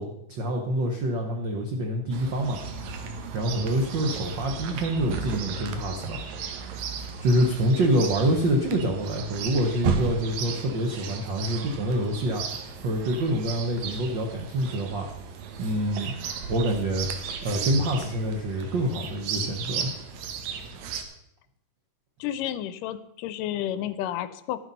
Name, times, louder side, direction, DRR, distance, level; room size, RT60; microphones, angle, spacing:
voice 1, 0.0-2.6 3.3-6.2 7.2-12.4 12.8-15.1 15.6-16.1 16.5-17.1 17.4-19.9, right 1 dB, 70° right, 2 dB, 1.0 m, -26 dB
Chirp tweet, 2.1-21.0, right 5 dB, 90° right, 2.7 m, -35 dB
voice 2, 22.2-24.6, left 11 dB, 85° left, 14 dB, 2.3 m, -31 dB
12.0 x 8.2 x 5.4 m, 0.78 s
omnidirectional pair, 3.7 m